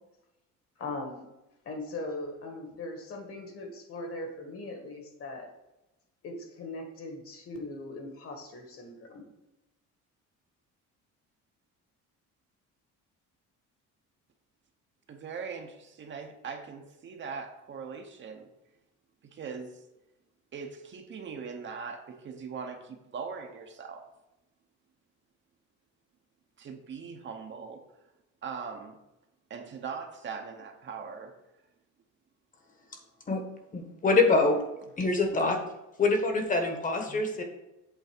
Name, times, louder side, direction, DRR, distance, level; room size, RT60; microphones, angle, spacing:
voice 1, 0.8-1.2 1.7-5.5 6.2-9.3, left 2 dB, 45° left, 3 dB, 1.7 m, -39 dB
voice 2, 15.1-18.5 19.3-19.8 20.5-24.1 26.6-27.8 28.4-29.0 29.5-31.3, right 5 dB, 40° right, 4 dB, 0.8 m, -40 dB
voice 3, 33.7-34.6 35.0-35.6 36.0-37.4, left 3 dB, 25° left, 4 dB, 1.2 m, -25 dB
8.1 x 4.0 x 6.0 m, 0.96 s
cardioid pair, 160°, 31 cm